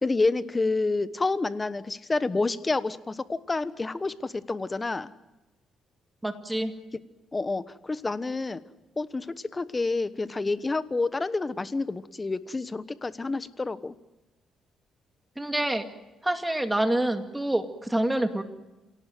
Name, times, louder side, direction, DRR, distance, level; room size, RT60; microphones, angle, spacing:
voice 1, 0.0-5.1 7.3-8.6 9.0-14.0, left 3 dB, 25° left, 14 dB, 1.1 m, -28 dB
voice 2, 6.2-6.7 15.4-15.9 16.2-18.4, right 1 dB, 10° right, 6 dB, 2.3 m, -27 dB
28.0 x 18.0 x 7.7 m, 1.0 s
cardioid pair, 90°, 0 cm